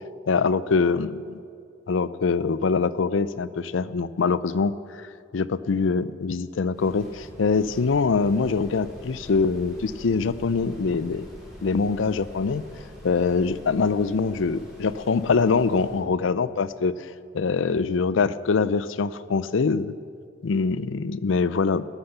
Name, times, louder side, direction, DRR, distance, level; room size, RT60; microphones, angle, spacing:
voice 1, 0.3-1.4 1.9-5.1 5.3-11.3 11.6-12.6 13.0-17.0 17.3-19.9 20.4-21.8, left 4 dB, 85° left, 16 dB, 0.5 m, -24 dB
sound 1, 6.7-16.0, equal, ahead, 4.4 m, -45 dB
13.5 x 11.5 x 6.7 m, 2.3 s
head